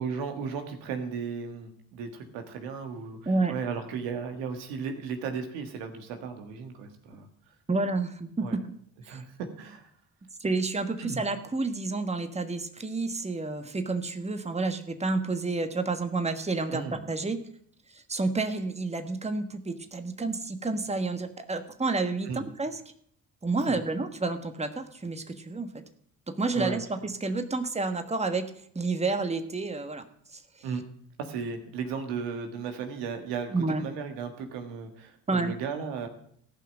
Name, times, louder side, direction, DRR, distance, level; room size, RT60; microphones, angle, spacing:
voice 1, 0.0-7.3 8.4-8.6 9.1-9.8 11.0-11.2 16.7-17.0 22.2-22.5 23.6-23.8 26.5-26.8 30.6-30.8 31.2-36.1, right 6 dB, 85° right, 5 dB, 1.7 m, -35 dB
voice 2, 7.7-8.6 9.1-9.2 10.4-17.4 17.9-22.8 23.4-25.8 26.3-30.0 30.3-30.4 33.5-33.8 35.3-35.5, right 3 dB, 15° right, 8 dB, 1.4 m, -30 dB
14.5 x 5.7 x 7.5 m, 0.64 s
hypercardioid pair, 55°, 41 cm